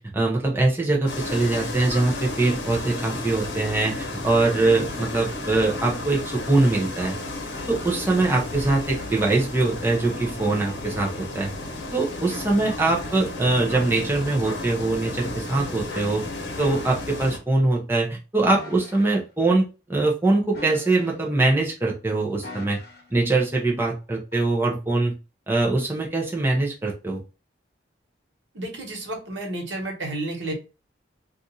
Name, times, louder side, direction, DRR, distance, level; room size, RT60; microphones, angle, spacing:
voice 1, 0.0-7.2 7.7-11.5 11.9-16.2 16.6-22.8 23.1-25.1 25.5-27.2, right 2 dB, 10° right, -2 dB, 0.6 m, -23 dB
sound 1, 1.1-17.4, left 2 dB, 80° left, 0.9 m, -33 dB
sound 2, 16.6-17.2 18.5-19.1 20.5-21.4 22.4-23.2 24.3-24.6, left 1 dB, 55° left, 0.9 m, -41 dB
voice 2, 28.5-30.5, right 2 dB, 85° right, 1 dB, 1.3 m, -31 dB
2.5 x 2.5 x 4.0 m, 0.30 s
head